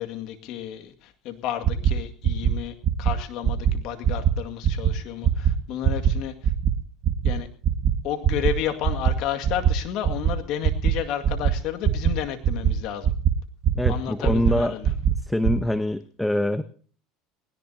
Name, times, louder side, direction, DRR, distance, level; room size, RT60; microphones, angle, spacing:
voice 1, 0.0-6.5 7.2-7.5 8.0-13.1 13.9-14.9, left 10 dB, 65° left, 6 dB, 2.1 m, -32 dB
sound 1, 1.6-1.9 2.2-2.5 2.8-3.1 3.4-3.7 4.0-4.3 4.6-4.9 5.2-5.5 5.8-6.1 6.4-6.7 7.0-7.3 7.6-7.9 8.2-8.5 8.8-9.1 9.4-9.7 10.0-10.3 10.6-10.9 11.2-11.5 11.8-12.1 12.4-12.7 13.0-13.3 13.6-13.9 14.2-14.5 14.8-15.1 15.4-15.5, right 9 dB, 50° right, 1.5 m, -20 dB
voice 2, 13.7-14.7 15.2-16.6, left 1 dB, 5° left, 12 dB, 0.9 m, -24 dB
19.5 x 18.0 x 2.8 m, 0.44 s
supercardioid pair, 95°, 0 cm